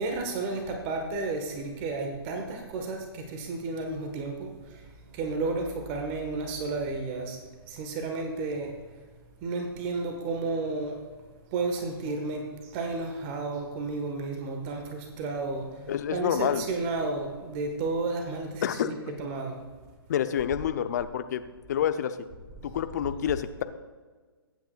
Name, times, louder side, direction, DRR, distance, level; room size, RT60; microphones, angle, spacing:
voice 1, 0.0-7.4 7.7-8.8 9.4-11.0 11.5-19.6 21.8-21.9 22.5-22.8, right 3 dB, 30° right, 4 dB, 1.4 m, -32 dB
voice 2, 15.9-16.7 18.6-18.9 20.1-21.4 21.7-22.2 22.6-23.6, left 9 dB, 45° left, 11 dB, 0.7 m, -28 dB
22.0 x 8.9 x 2.4 m, 1.4 s
figure-of-eight pair, 130°, 13 cm